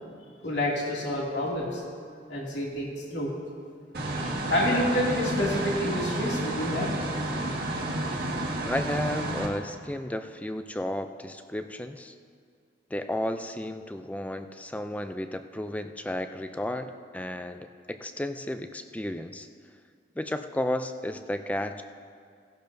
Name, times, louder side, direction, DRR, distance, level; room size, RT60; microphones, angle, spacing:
voice 1, 0.4-1.8 2.3-3.3 4.2-6.9, left 1 dB, 70° left, -4 dB, 2.5 m, -28 dB
sound 1, 3.9-9.5, right 1 dB, 55° right, 1.6 m, -31 dB
voice 2, 8.7-12.1 12.9-19.5 20.2-21.8, left 1 dB, 10° left, 9 dB, 0.4 m, -33 dB
17.0 x 12.0 x 2.7 m, 2.2 s
head